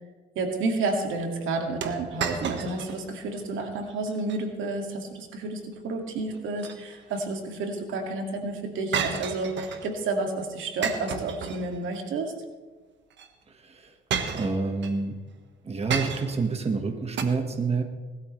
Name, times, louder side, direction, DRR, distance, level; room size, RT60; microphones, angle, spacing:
voice 1, 0.4-12.3, right 3 dB, 85° right, 3 dB, 2.2 m, -30 dB
sound 1, 1.8-3.0 3.4-3.5 4.1-4.4 6.3-7.2 8.9-9.9 10.8-12.0 13.1-13.3 14.1-15.0 15.9-16.5 17.2-17.3, right 6 dB, 65° right, 1.4 m, -32 dB
voice 2, 13.5-13.9 14.3-15.2 15.6-17.8, right 4 dB, 30° right, 5 dB, 1.5 m, -28 dB
19.5 x 13.0 x 3.2 m, 1.4 s
cardioid pair, 90°, 20 cm